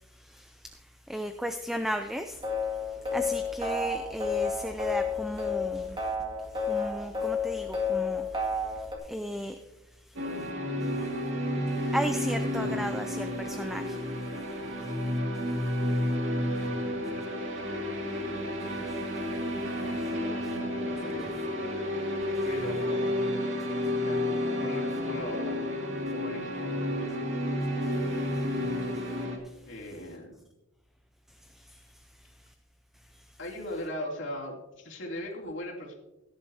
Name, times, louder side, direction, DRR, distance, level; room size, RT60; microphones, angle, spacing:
voice 1, 0.2-0.8 1.1-2.4 2.9-6.1 6.6-9.6 10.8-10.9 11.7-14.0 14.8-14.9 18.9-19.0 20.0-20.1 28.3-28.4 31.5-31.8 33.1-33.2, equal, ahead, 7 dB, 0.4 m, -35 dB
sound 1, 2.3-9.0, left 4 dB, 25° right, 2.1 m, -31 dB
sound 2, 10.2-29.4, left 1 dB, 60° right, 2.3 m, -31 dB
voice 2, 16.3-17.2 19.8-21.4 22.4-23.1 24.0-25.7 26.1-26.9 27.4-28.9 29.7-30.5 33.4-35.9, left 1 dB, 60° left, -2 dB, 2.9 m, -40 dB
17.0 x 10.5 x 2.8 m, 0.99 s
head